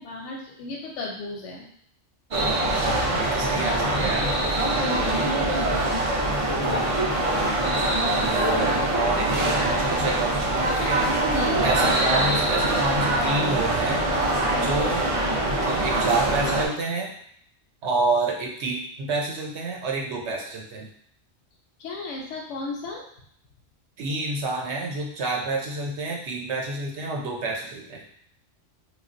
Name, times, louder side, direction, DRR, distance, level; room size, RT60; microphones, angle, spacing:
voice 1, 0.0-1.7 3.6-4.1 5.0-5.9 11.3-11.6 14.5-14.8 21.8-23.0, left 2 dB, 85° left, -1 dB, 0.9 m, -35 dB
sound 1, 2.3-16.7, right 1 dB, 50° right, 0.4 m, -23 dB
voice 2, 2.8-4.5 6.6-7.0 8.1-11.0 11.6-14.0 14.6-15.1 15.5-17.1 17.8-20.9 24.0-28.0, right 3 dB, 70° right, -1 dB, 0.9 m, -29 dB
3.1 x 2.4 x 2.5 m, 0.67 s
omnidirectional pair, 1.2 m